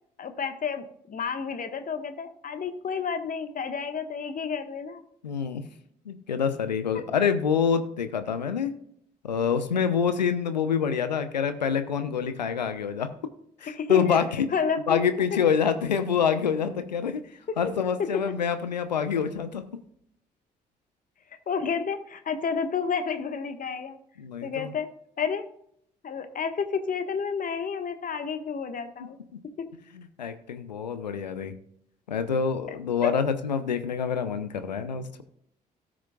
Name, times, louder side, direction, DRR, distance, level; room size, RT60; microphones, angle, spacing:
voice 1, 0.2-5.0 6.9-7.0 13.7-14.2 14.5-15.1 17.5-17.7 18.0-18.4 21.5-24.0 24.4-24.9 25.2-25.5 26.0-29.2 29.6-29.7 32.7-32.8 33.0-33.1, left 6 dB, 40° left, 8 dB, 1.4 m, -30 dB
voice 2, 5.2-5.6 6.1-8.8 9.2-13.1 13.6-14.5 14.9-17.2 17.6-19.6 24.2-24.7 29.9-31.5 32.1-35.2, left 7 dB, 85° left, 11 dB, 0.8 m, -26 dB
18.0 x 6.3 x 2.3 m, 0.71 s
figure-of-eight pair, 45°, 21 cm